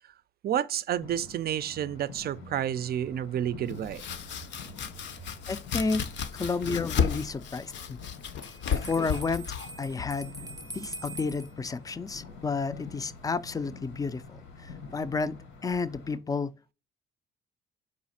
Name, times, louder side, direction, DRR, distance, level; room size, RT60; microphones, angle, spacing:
voice 1, 0.4-4.0, right 10 dB, 50° right, 0.4 m, -30 dB
sound 1, 1.0-16.2, left 4 dB, 90° left, 1.2 m, -47 dB
Domestic sounds home sounds, 3.7-11.4, left 7 dB, 65° left, 0.6 m, -34 dB
voice 2, 5.5-6.0 6.3-8.0 8.7-9.5 9.8-10.3 10.7-16.7, left 4 dB, 20° left, 0.4 m, -31 dB
Bell, 8.4-11.5, right 2 dB, 15° right, 0.7 m, -43 dB
5.0 x 2.4 x 4.1 m
cardioid pair, 90°, 20 cm